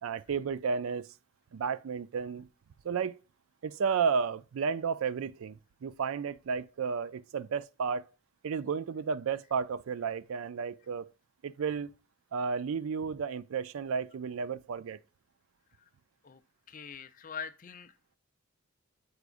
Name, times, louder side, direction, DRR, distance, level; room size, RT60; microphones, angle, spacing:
voice 1, 0.0-1.1 1.5-2.5 2.8-3.2 3.6-8.0 8.4-11.1 11.4-11.9 12.3-15.0, right 6 dB, 65° right, 0.4 m, -32 dB
voice 2, 16.7-17.9, left 6 dB, 40° left, 0.5 m, -43 dB
8.0 x 4.8 x 2.5 m
head